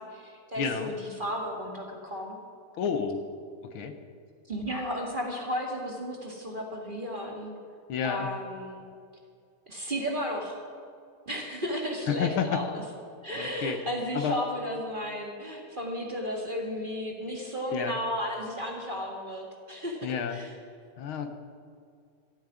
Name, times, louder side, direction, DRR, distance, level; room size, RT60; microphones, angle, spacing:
voice 1, 0.0-2.4 4.5-7.5 8.0-8.9 9.7-10.6 11.3-12.8 13.2-20.5, equal, 25° right, 0 dB, 1.8 m, -34 dB
voice 2, 0.6-0.9 2.8-3.2 3.7-4.0 7.9-8.3 12.1-12.6 13.3-13.8 14.1-14.4 17.7-18.0 20.0-20.4 21.0-21.3, left 7 dB, 70° left, 7 dB, 1.7 m, -30 dB
14.0 x 7.9 x 9.7 m, 2.2 s
omnidirectional pair, 2.4 m